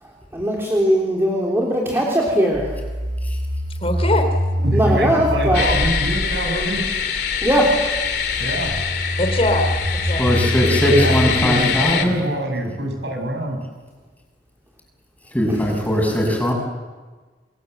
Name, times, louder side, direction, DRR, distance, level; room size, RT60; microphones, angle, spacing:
voice 1, 0.0-2.8 4.7-5.7 7.4-7.7 15.5-15.7, equal, 15° right, -3 dB, 3.5 m, -20 dB
sound 1, 2.5-11.4, equal, 45° right, 2.2 m, -25 dB
voice 2, 3.8-4.2 9.2-9.7 9.9-10.3, left 2 dB, 35° left, 6 dB, 2.9 m, -21 dB
voice 3, 4.6-6.8 8.4-8.7 10.8-13.6, right 1 dB, 70° right, 3 dB, 7.2 m, -25 dB
sound 2, 5.5-12.1, left 6 dB, 65° left, 3.0 m, -24 dB
voice 4, 10.2-12.3 15.3-16.5, equal, 10° left, 0 dB, 6.9 m, -19 dB
28.5 x 23.0 x 8.0 m, 1.4 s
head